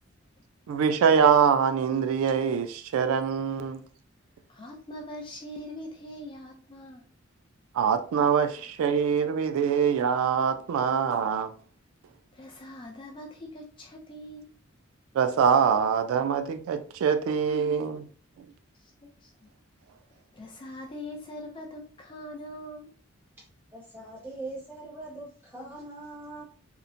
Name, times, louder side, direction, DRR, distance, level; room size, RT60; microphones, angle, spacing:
voice 1, 0.7-3.8 7.7-11.5 15.1-18.1 18.4-18.5, right 7 dB, 90° right, 0.3 m, -24 dB
voice 2, 4.5-7.0 12.3-14.5 18.8-18.9 19.2-19.5 20.1-22.9, left 1 dB, 25° left, 0.3 m, -42 dB
voice 3, 23.7-26.4, right 2 dB, 10° right, 1.1 m, -41 dB
2.9 x 2.0 x 2.5 m
head